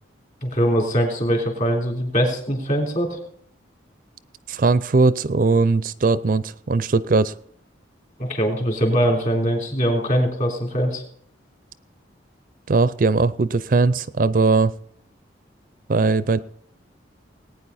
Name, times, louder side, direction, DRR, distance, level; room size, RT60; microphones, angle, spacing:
voice 1, 0.4-3.2 8.2-11.0, equal, 40° left, 1 dB, 3.5 m, -22 dB
voice 2, 4.5-7.3 12.7-14.7 15.9-16.4, right 3 dB, 45° right, 16 dB, 0.4 m, -19 dB
19.5 x 9.2 x 4.1 m, 0.65 s
head